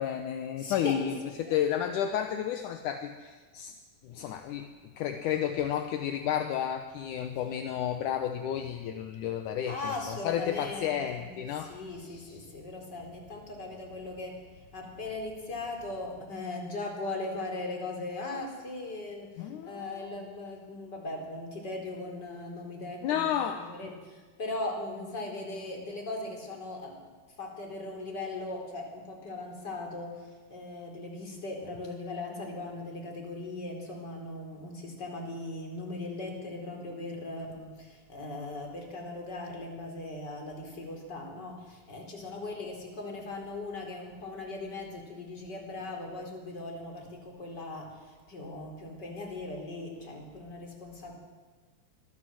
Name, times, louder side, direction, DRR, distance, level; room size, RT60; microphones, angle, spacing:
voice 1, 0.0-3.7 4.0-12.5 19.4-20.1 23.0-23.9, left 9 dB, 75° left, 6 dB, 2.3 m, -32 dB
voice 2, 0.5-1.6 9.7-23.3 23.5-27.1 27.4-30.2 30.5-51.2, left 2 dB, 30° left, 0 dB, 4.7 m, -39 dB
25.0 x 18.0 x 7.8 m, 1.4 s
omnidirectional pair, 3.9 m